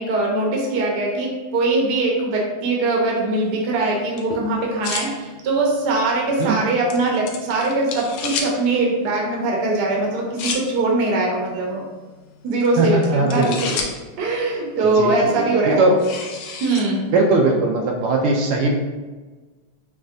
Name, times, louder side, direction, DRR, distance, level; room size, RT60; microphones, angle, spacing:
voice 1, 0.0-11.8 12.4-13.6 14.2-15.8 16.6-17.0, right 2 dB, 60° right, -2 dB, 1.3 m, -21 dB
sound 1, 3.4-17.4, left 4 dB, 85° left, 1.5 m, -35 dB
voice 2, 12.8-13.8 14.8-16.0 17.1-18.8, right 2 dB, 80° right, 1 dB, 1.5 m, -20 dB
5.2 x 3.2 x 2.6 m, 1.3 s
omnidirectional pair, 2.4 m